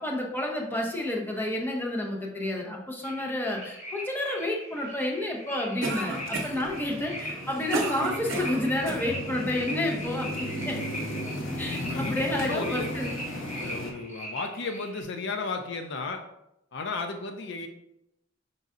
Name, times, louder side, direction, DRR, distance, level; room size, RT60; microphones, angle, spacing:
voice 1, 0.0-10.8 11.6-13.1, left 1 dB, 10° left, -1 dB, 0.7 m, -30 dB
sound 1, 3.0-15.0, equal, 35° left, 1.2 m, -40 dB
Cough, 5.8-6.7 7.3-9.1, right 2 dB, 75° right, 0.7 m, -31 dB
sound 2, 6.1-13.9, left 1 dB, 85° left, 0.8 m, -36 dB
voice 2, 11.8-12.9 13.6-16.2 16.7-17.7, left 3 dB, 65° left, 6 dB, 0.4 m, -34 dB
5.4 x 3.9 x 2.5 m, 0.84 s
head